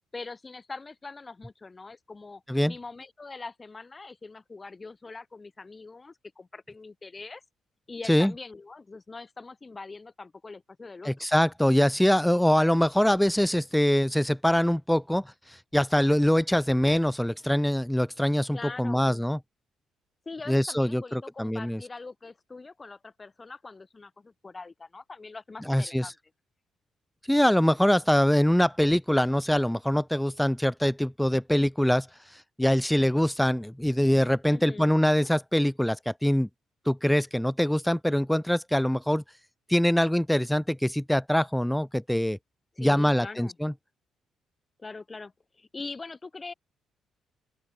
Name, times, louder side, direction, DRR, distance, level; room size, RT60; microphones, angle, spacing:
voice 1, 0.1-7.4 7.9-11.3 18.5-19.3 20.3-26.1 34.5-34.9 42.8-43.6 44.8-46.5, left 3 dB, 25° left, 5.3 m, -42 dB
voice 2, 11.0-15.2 15.7-19.4 20.5-21.8 25.7-26.0 27.3-32.1 32.6-36.5 36.9-39.2 39.7-42.4 42.8-43.7, equal, 5° left, 1.0 m, -23 dB
open air
cardioid pair, 90°, 0 cm